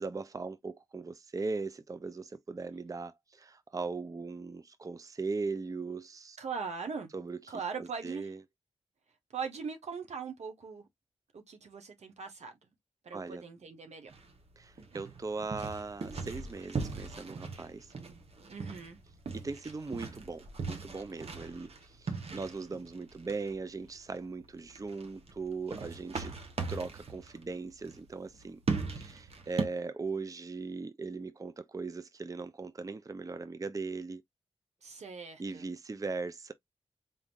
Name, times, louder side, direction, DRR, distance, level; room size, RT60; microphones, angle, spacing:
voice 1, 0.0-6.4 7.1-7.4 7.8-8.4 13.1-13.4 14.6-17.9 19.3-26.3 26.7-28.6 28.9-34.2 35.4-36.5, right 4 dB, 30° right, 0.5 m, -39 dB
voice 2, 6.4-7.1 7.5-8.3 9.3-10.9 11.3-12.6 13.0-14.1 18.5-19.0 34.8-35.7, right 5 dB, 85° right, 1.2 m, -40 dB
sound 1, 14.1-29.7, right 4 dB, 65° right, 1.1 m, -40 dB
3.7 x 3.7 x 2.5 m
cardioid pair, 70°, 11 cm